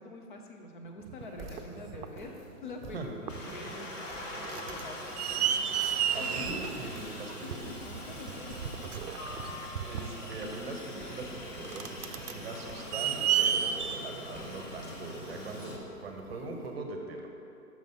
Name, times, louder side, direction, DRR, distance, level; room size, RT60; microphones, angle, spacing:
voice 1, 0.0-2.4 2.6-5.2 7.1-8.7, left 2 dB, 30° left, 3 dB, 0.6 m, -46 dB
sound 1, 1.1-2.2 2.8-3.0 3.2-3.8 4.1-15.5 16.3-16.4, right 9 dB, 70° right, 0.6 m, -33 dB
sound 2, 1.2-16.7, right 1 dB, ahead, 1.4 m, -51 dB
Aircraft, 3.3-15.8, left 1 dB, 50° left, 1.3 m, -43 dB
voice 2, 5.8-7.6 9.8-17.3, right 2 dB, 40° right, 2 dB, 0.8 m, -41 dB
6.2 x 5.3 x 5.2 m, 2.7 s
figure-of-eight pair, 140°, 47 cm